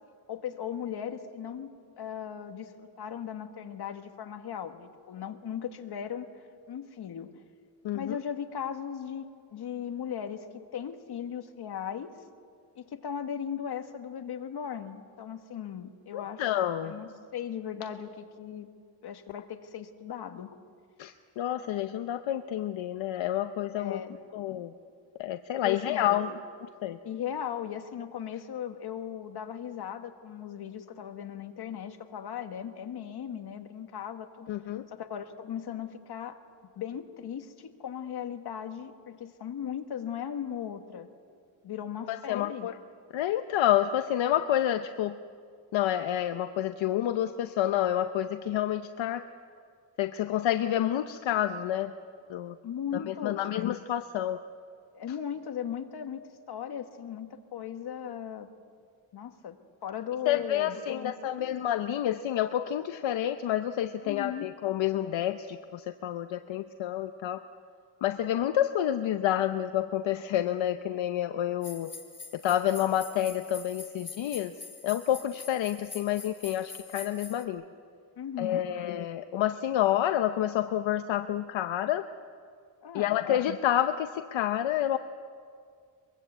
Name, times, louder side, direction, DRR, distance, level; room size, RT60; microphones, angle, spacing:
voice 1, 0.3-6.3 6.7-7.3 7.9-12.1 12.7-16.4 16.8-18.7 19.0-20.5 23.8-24.6 25.6-26.4 27.0-34.5 34.9-36.4 36.7-41.1 41.6-42.7 52.6-53.4 54.9-58.5 59.1-61.6 64.0-64.5 78.2-78.7 82.8-83.1, left 8 dB, 55° left, 6 dB, 1.6 m, -37 dB
voice 2, 7.8-8.2 16.1-16.9 21.0-24.0 24.3-24.7 25.2-26.3 26.8-27.0 34.5-34.8 42.1-42.7 43.1-45.1 45.7-49.2 50.0-51.9 52.3-52.6 52.9-54.4 60.3-67.4 68.0-71.9 72.4-74.5 74.8-77.6 78.4-82.0 82.9-85.0, left 11 dB, 75° left, 8 dB, 0.9 m, -29 dB
sound 1, 71.6-77.4, left 4 dB, 25° left, 2.4 m, -45 dB
23.0 x 22.5 x 8.1 m, 2.2 s
cardioid pair, 150°, 47 cm